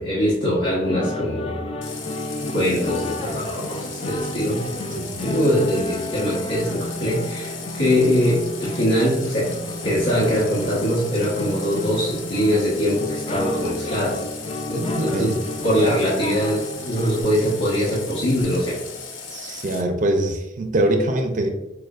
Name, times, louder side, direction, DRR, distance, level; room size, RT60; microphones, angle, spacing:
voice 1, 0.0-1.5 2.4-4.6 5.2-9.5 9.8-14.2 14.7-15.3 15.6-18.8, equal, 70° left, -8 dB, 1.2 m, -22 dB
sound 1, 0.8-17.2, left 2 dB, 30° left, 0.4 m, -32 dB
Water tap faucet, 1.8-19.8, left 5 dB, 90° left, 0.7 m, -37 dB
voice 2, 14.9-15.4 19.3-21.5, right 1 dB, 45° right, 4 dB, 0.5 m, -23 dB
6.4 x 2.2 x 2.4 m, 1.0 s
head